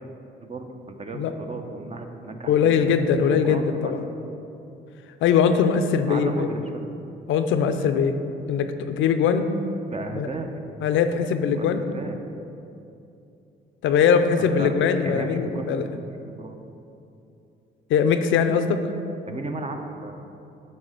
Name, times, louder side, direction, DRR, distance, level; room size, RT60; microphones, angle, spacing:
voice 1, 0.4-2.8 3.3-4.0 4.2-4.3 6.1-6.6 9.9-10.5 11.5-11.7 11.9-12.2 14.4-14.7 15.0-16.1 16.4-16.6 19.3-20.2, right 3 dB, 30° right, 5 dB, 0.8 m, -35 dB
voice 2, 2.5-4.0 5.2-6.5 7.3-8.1 8.5-9.4 10.1-10.3 10.8-11.8 13.8-15.8 17.9-18.8, left 7 dB, 80° left, 8 dB, 0.5 m, -21 dB
9.1 x 3.3 x 6.6 m, 2.7 s
cardioid pair, 75°, 20 cm